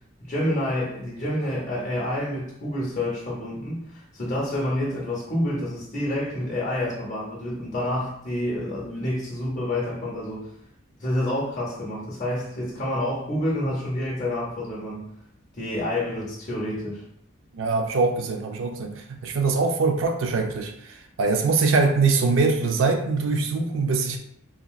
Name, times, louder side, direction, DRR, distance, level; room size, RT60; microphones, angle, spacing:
voice 1, 0.2-10.5 11.0-15.1 15.5-17.0, left 1 dB, 35° left, -4 dB, 0.7 m, -28 dB
voice 2, 17.5-24.2, right 4 dB, 70° right, 4 dB, 0.4 m, -23 dB
2.9 x 2.7 x 2.3 m, 0.72 s
head